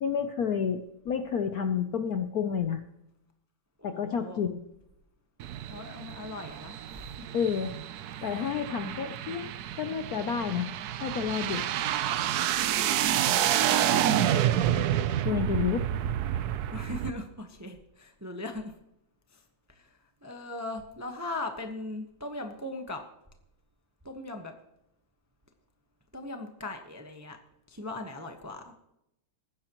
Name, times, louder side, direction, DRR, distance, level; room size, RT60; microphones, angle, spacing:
voice 1, 0.0-2.8 3.8-4.6 7.3-7.7 8.2-10.7 11.0-11.7 15.2-15.9, left 7 dB, 65° left, 8 dB, 0.9 m, -30 dB
voice 2, 3.8-4.4 5.7-7.3 12.7-14.1 16.7-18.7 19.3-19.4 19.7-23.0 24.0-24.5 26.1-27.4 27.7-28.7, left 2 dB, 15° right, 4 dB, 0.7 m, -39 dB
sound 1, 5.4-17.1, right 11 dB, 70° right, 0.9 m, -29 dB
20.0 x 10.0 x 3.0 m, 0.83 s
omnidirectional pair, 2.2 m